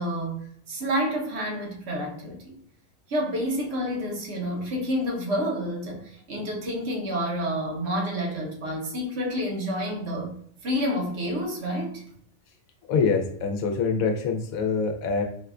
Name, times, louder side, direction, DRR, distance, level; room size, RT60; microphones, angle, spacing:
voice 1, 0.0-2.5 3.1-10.3 10.6-12.0, equal, 55° right, 0 dB, 1.0 m, -29 dB
voice 2, 12.9-15.2, left 5 dB, 85° left, 3 dB, 1.0 m, -25 dB
4.8 x 2.2 x 2.3 m, 0.64 s
omnidirectional pair, 1.4 m